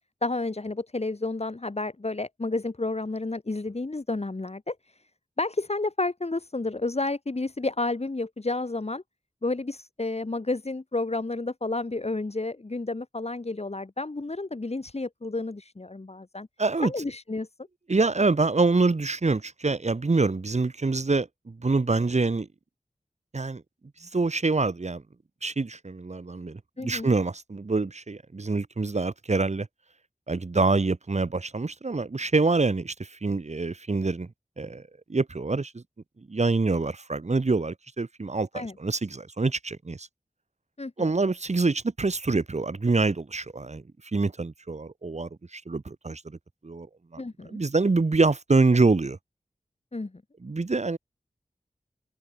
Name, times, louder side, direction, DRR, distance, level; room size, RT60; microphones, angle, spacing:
voice 1, 0.2-4.9 5.4-9.0 9.4-16.5 16.8-17.5 26.8-27.1 38.5-38.7 40.8-41.1 47.2-47.6 49.9-50.1, left 2 dB, 45° left, 1.9 m, -31 dB
voice 2, 16.6-16.9 17.9-22.5 23.3-23.6 24.0-25.0 25.4-29.7 30.3-34.3 34.6-34.8 35.1-35.8 36.3-40.1 41.0-43.8 44.1-46.4 46.6-46.9 47.1-47.2 47.5-49.2 50.4-51.0, right 3 dB, 50° right, 1.1 m, -25 dB
wide cardioid pair, 45°, 15 cm